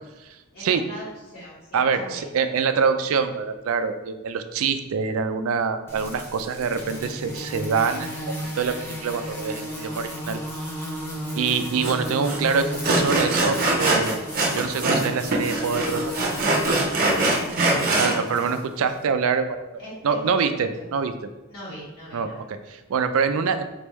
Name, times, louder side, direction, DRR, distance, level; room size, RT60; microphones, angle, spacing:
voice 1, 0.5-2.2 18.0-18.5 19.0-19.1 19.8-20.9 21.5-22.5, equal, 45° left, -9 dB, 1.4 m, -40 dB
voice 2, 1.7-8.1 8.4-10.4 11.4-14.2 14.5-16.1 18.0-19.6 20.0-21.1 22.1-23.6, right 5 dB, 65° right, 9 dB, 0.4 m, -25 dB
sound 1, 5.9-18.6, equal, 10° left, 0.7 m, -34 dB
Sawing, 11.8-11.9 12.2-12.4 12.8-15.1 15.3-18.2, right 2 dB, 40° right, 0.7 m, -22 dB
4.3 x 3.4 x 3.0 m, 1.1 s
head